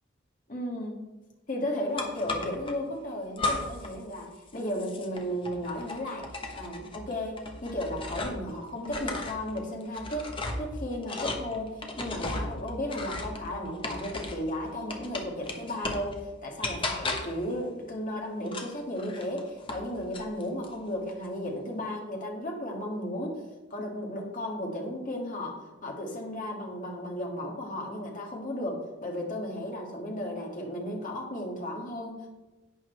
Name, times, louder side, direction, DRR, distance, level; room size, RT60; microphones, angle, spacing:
voice 1, 0.5-1.0 1.5-6.3 6.5-10.3 10.6-23.4 23.7-32.3, left 1 dB, 40° left, -1 dB, 2.2 m, -34 dB
sound 1, 2.0-2.7 3.4-3.9 4.2-8.5 8.8-14.5 14.9-16.1 16.6-17.4 18.5-19.9 20.1-20.7, left 2 dB, 25° left, 1.1 m, -35 dB
11.0 x 9.0 x 3.4 m, 1.1 s
head